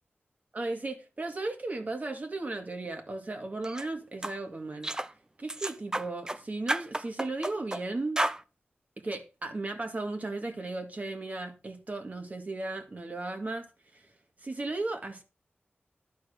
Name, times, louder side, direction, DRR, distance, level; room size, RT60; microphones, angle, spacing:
voice 1, 0.5-4.9 5.4-8.2 9.0-13.7 13.9-14.0 14.4-15.2, right 2 dB, 40° right, 2.0 m, -35 dB
sound 1, 3.6-3.8 4.2-4.4 4.8-5.1 5.5-6.4 6.7-7.8 8.2-8.4, right 1 dB, 15° right, 0.6 m, -31 dB
12.0 x 4.3 x 6.5 m
wide cardioid pair, 90°, 4 cm